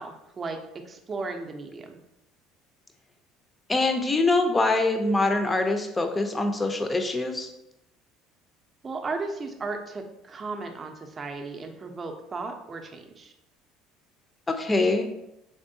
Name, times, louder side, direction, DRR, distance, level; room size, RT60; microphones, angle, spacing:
voice 1, 0.0-2.0 8.8-13.3, right 3 dB, 30° right, 4 dB, 0.6 m, -35 dB
voice 2, 3.7-7.5 14.5-15.1, left 2 dB, 20° left, 5 dB, 0.6 m, -24 dB
3.6 x 3.3 x 2.7 m, 0.86 s
supercardioid pair, 80°, 0 cm